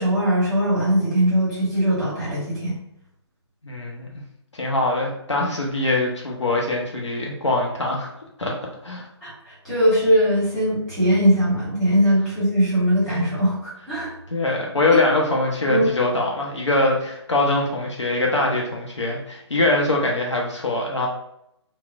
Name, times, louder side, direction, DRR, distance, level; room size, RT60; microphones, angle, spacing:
voice 1, 0.0-2.7 9.2-9.3 9.6-14.1 15.7-15.9, equal, 5° left, -10 dB, 1.0 m, -20 dB
voice 2, 3.6-4.1 4.5-8.1 8.4-8.5 8.8-9.1 14.3-21.1, left 2 dB, 80° left, -1 dB, 0.6 m, -23 dB
3.0 x 2.0 x 2.3 m, 0.78 s
figure-of-eight pair, 140°, 15 cm